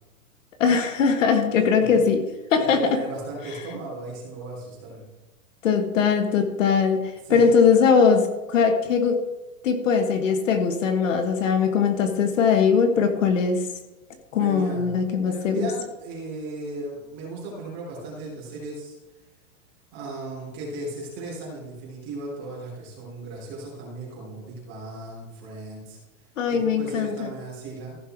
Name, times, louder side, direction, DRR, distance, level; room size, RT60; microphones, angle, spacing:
voice 1, 0.6-2.2 2.5-3.0 5.6-9.2 9.6-13.6 14.3-15.7 26.4-27.1, left 6 dB, 65° left, 7 dB, 1.4 m, -20 dB
voice 2, 2.6-5.1 7.2-7.5 14.3-19.0 19.9-26.0 26.5-28.0, right 2 dB, 25° right, -4 dB, 3.8 m, -36 dB
15.0 x 5.6 x 4.5 m, 1.1 s
supercardioid pair, 175°, 42 cm